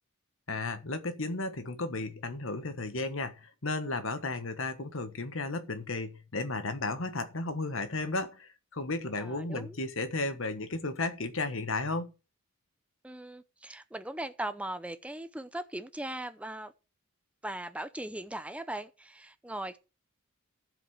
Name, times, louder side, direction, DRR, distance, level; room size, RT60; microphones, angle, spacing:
voice 1, 0.5-12.1, left 2 dB, 65° left, 1.4 m, -34 dB
voice 2, 9.2-9.8 13.0-16.7 17.4-19.8, right 1 dB, 5° right, 0.5 m, -39 dB
14.5 x 5.2 x 6.5 m
head